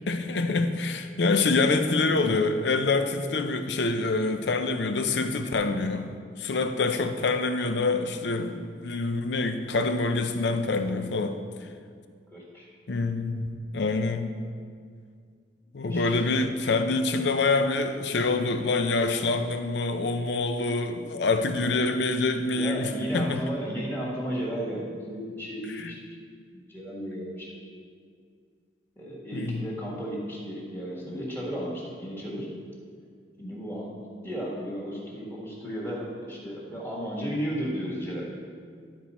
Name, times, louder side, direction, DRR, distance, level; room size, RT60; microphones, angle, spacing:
voice 1, 0.1-6.1 6.4-11.4 12.9-14.4 15.7-23.4 25.7-25.9 29.3-29.6, left 3 dB, 70° left, 7 dB, 0.5 m, -26 dB
voice 2, 12.3-12.7 15.9-16.2 21.1-21.2 22.5-26.0 26.5-27.6 29.0-32.5 33.4-38.3, equal, 10° left, -5 dB, 1.6 m, -34 dB
11.5 x 4.4 x 4.1 m, 2.1 s
head